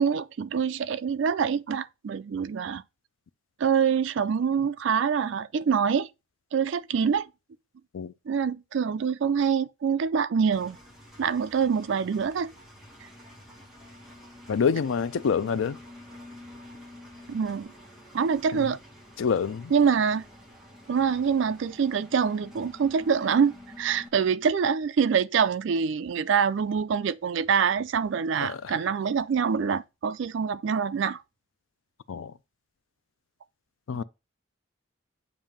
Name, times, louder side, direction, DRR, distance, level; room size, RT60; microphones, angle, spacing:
voice 1, 0.0-2.8 3.6-6.1 6.5-7.3 8.3-10.8 11.2-12.5 17.3-17.7 18.1-18.8 19.7-20.2 20.9-31.2 33.9-34.0, right 6 dB, 60° right, 0.4 m, -25 dB
Engine, 10.5-24.1, left 1 dB, ahead, 1.2 m, -49 dB
voice 2, 14.5-15.8 18.5-18.6 19.2-19.7 28.4-28.7 32.1-32.3 33.9-34.0, left 6 dB, 75° left, 0.4 m, -27 dB
7.3 x 2.7 x 5.0 m
head